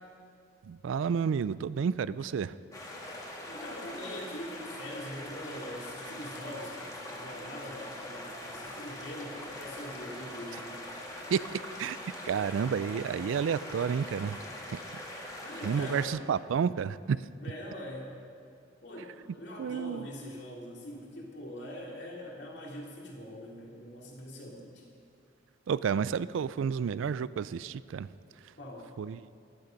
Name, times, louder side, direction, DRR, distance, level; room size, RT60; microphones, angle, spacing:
voice 1, 0.6-2.6 11.3-12.0 12.2-14.8 15.6-17.3 19.6-20.1 25.7-28.1 29.0-29.4, right 6 dB, 75° right, 17 dB, 0.3 m, -31 dB
sound 1, 2.7-16.1, left 1 dB, 15° left, 1.6 m, -42 dB
voice 2, 3.5-10.7 15.4-16.2 17.4-18.1 18.8-24.8 28.6-28.9, equal, 60° left, -2 dB, 2.7 m, -43 dB
14.5 x 11.5 x 5.2 m, 2.3 s
head